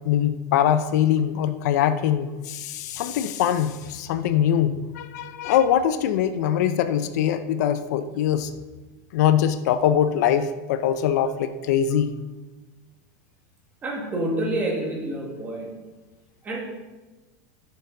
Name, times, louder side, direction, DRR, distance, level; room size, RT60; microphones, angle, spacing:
voice 1, 0.0-8.5 9.1-12.1, left 9 dB, 70° left, 11 dB, 0.6 m, -22 dB
voice 2, 13.8-15.7 16.4-16.6, right 1 dB, 20° right, -1 dB, 1.9 m, -28 dB
14.5 x 6.7 x 3.9 m, 1.2 s
supercardioid pair, 165°, 9 cm